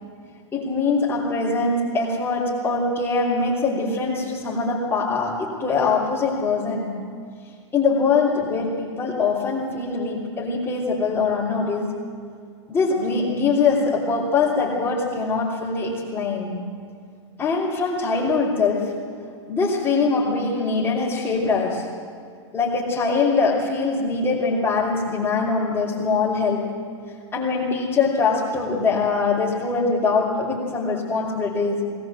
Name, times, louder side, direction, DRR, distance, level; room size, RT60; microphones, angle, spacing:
voice 1, 0.5-6.9 7.7-12.0 12.7-16.6 17.4-19.0 19.5-21.9 22.5-26.8 27.3-31.8, left 4 dB, 15° left, -9 dB, 3.4 m, -23 dB
20.0 x 20.0 x 7.7 m, 2.2 s
supercardioid pair, 150°, 15 cm